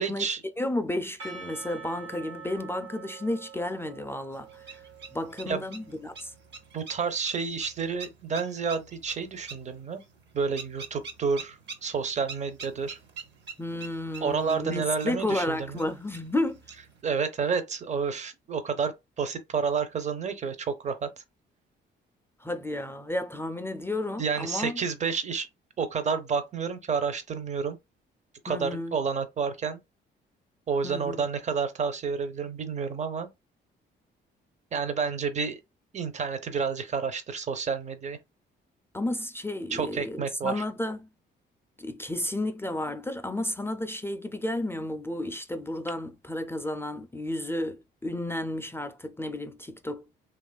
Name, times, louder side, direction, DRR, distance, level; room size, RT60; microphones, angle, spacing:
voice 1, 0.0-0.4 5.5-5.6 6.7-10.0 10.3-13.0 14.2-15.9 17.0-21.2 24.2-25.5 25.8-27.8 28.4-29.8 30.7-33.3 34.7-35.6 35.9-38.2 39.7-40.6, right 5 dB, 35° right, 0.6 m, -30 dB
voice 2, 0.6-4.8 5.1-6.3 13.6-16.6 22.4-24.8 28.5-29.0 30.8-31.3 38.9-41.1 41.8-50.0, left 1 dB, 10° left, 0.3 m, -32 dB
Percussion / Church bell, 1.2-6.4, right 6 dB, 85° right, 1.2 m, -46 dB
sound 1, 4.3-17.0, right 5 dB, 60° right, 0.8 m, -46 dB
2.9 x 2.4 x 2.3 m
cardioid pair, 90°, 20 cm